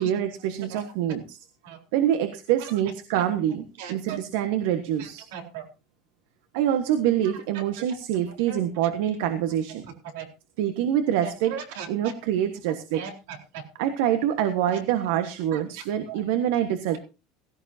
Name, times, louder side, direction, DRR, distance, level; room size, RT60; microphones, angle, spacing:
voice 1, 0.0-1.4 1.9-5.3 6.5-9.8 10.6-11.6 11.9-13.1 13.7-17.0, right 10 dB, 70° right, 9 dB, 1.3 m, -25 dB
voice 2, 3.8-4.2 5.3-5.6 8.5-8.9 10.2-10.3 11.5-11.9 12.9-13.1 15.5-15.6 16.1-16.2, right 8 dB, 85° right, 5 dB, 4.0 m, -37 dB
16.0 x 15.5 x 2.8 m, 0.29 s
cardioid pair, 160°, 0 cm